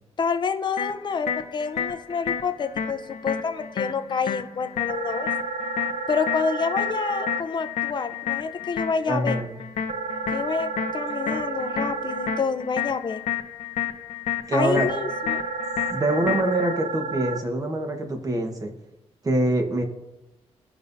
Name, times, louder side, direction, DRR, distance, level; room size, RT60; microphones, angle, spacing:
voice 1, 0.2-5.3 6.1-9.4 10.3-13.2 14.5-15.4, left 5 dB, 40° left, 9 dB, 0.6 m, -28 dB
sound 1, 0.8-16.8, left 9 dB, 80° left, 0.7 m, -31 dB
sound 2, 4.9-7.4 9.9-12.4 14.9-17.4, right 5 dB, 60° right, 0.6 m, -31 dB
voice 2, 9.1-9.5 11.7-11.8 14.5-14.9 15.9-18.7 19.2-19.8, right 1 dB, 30° right, 4 dB, 1.3 m, -24 dB
16.0 x 5.4 x 2.7 m, 0.93 s
cardioid pair, 115°, 11 cm